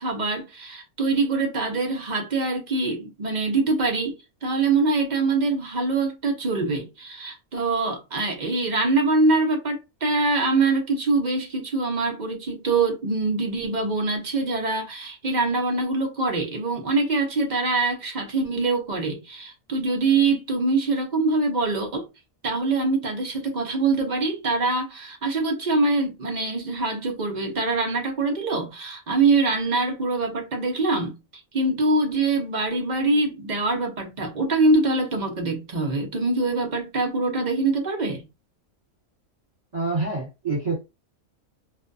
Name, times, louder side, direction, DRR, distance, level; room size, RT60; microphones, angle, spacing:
voice 1, 0.0-22.1 22.4-38.2, right 3 dB, 50° right, 0.5 m, -24 dB
voice 2, 39.7-40.9, right 3 dB, 30° right, 1.3 m, -27 dB
2.5 x 2.2 x 2.5 m
omnidirectional pair, 1.5 m